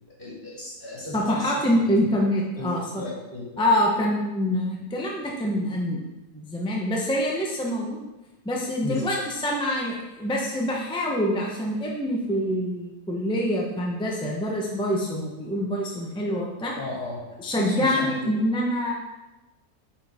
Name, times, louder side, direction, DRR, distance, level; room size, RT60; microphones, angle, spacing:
voice 1, 0.2-1.5 2.6-3.6 8.8-9.2 16.7-18.4, left 2 dB, 35° left, -6 dB, 2.4 m, -35 dB
voice 2, 1.1-3.0 3.6-6.0 6.3-8.0 8.4-16.8 17.4-18.9, equal, 5° left, -2 dB, 0.4 m, -25 dB
8.9 x 4.5 x 3.5 m, 1.1 s
omnidirectional pair, 1.7 m